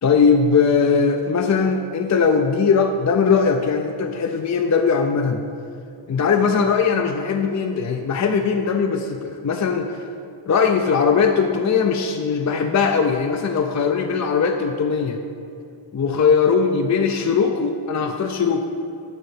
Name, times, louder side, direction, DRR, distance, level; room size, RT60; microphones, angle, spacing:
voice 1, 0.0-5.5 6.1-10.0 10.5-15.2 15.9-18.7, left 5 dB, 40° left, 5 dB, 0.4 m, -20 dB
11.0 x 3.8 x 6.7 m, 2.4 s
wide cardioid pair, 170°, 48 cm